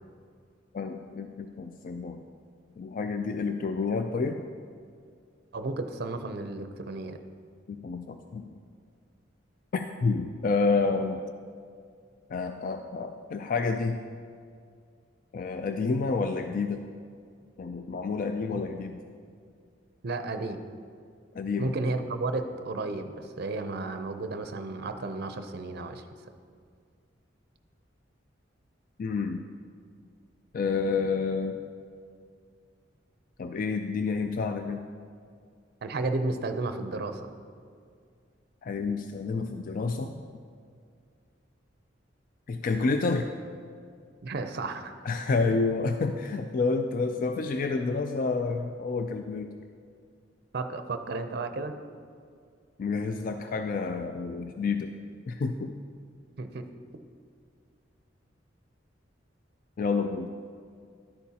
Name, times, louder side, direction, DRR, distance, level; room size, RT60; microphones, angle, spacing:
voice 1, 0.7-2.2 2.8-4.4 7.7-8.4 9.7-11.2 12.3-14.0 15.3-16.8 17.6-19.0 21.4-21.7 29.0-29.4 30.5-31.6 33.4-34.8 38.6-40.2 42.5-43.3 45.0-49.5 52.8-54.9 55.3-55.7 59.8-60.3, left 4 dB, 45° left, 6 dB, 0.3 m, -29 dB
voice 2, 5.5-7.2 18.5-18.6 20.0-20.6 21.6-26.0 35.8-37.3 44.2-44.9 50.5-51.8 56.4-56.7, right 3 dB, 60° right, 8 dB, 0.5 m, -33 dB
11.0 x 8.4 x 2.8 m, 2.2 s
head